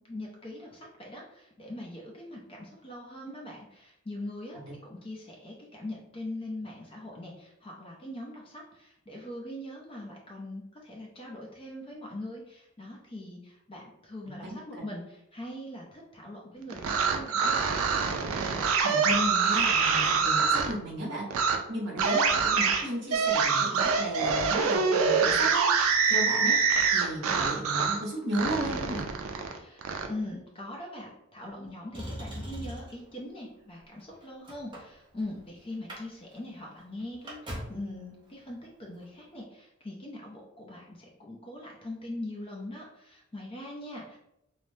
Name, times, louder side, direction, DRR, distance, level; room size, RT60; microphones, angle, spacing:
voice 1, 0.0-17.6 29.4-44.2, left 1 dB, 25° left, -2 dB, 0.5 m, -41 dB
voice 2, 14.2-14.8 18.8-29.0, right 1 dB, 55° right, -5 dB, 1.0 m, -35 dB
sound 1, 16.7-20.7 21.3-21.6 22.0-28.0 28.3-30.1, right 5 dB, 80° right, 0.4 m, -25 dB
Motor vehicle (road), 31.9-33.1 33.8-35.4 35.7-36.0 36.3-36.4 36.8-37.9 38.9-39.0, equal, 20° right, 0.6 m, -40 dB
3.2 x 2.0 x 2.6 m, 0.82 s
head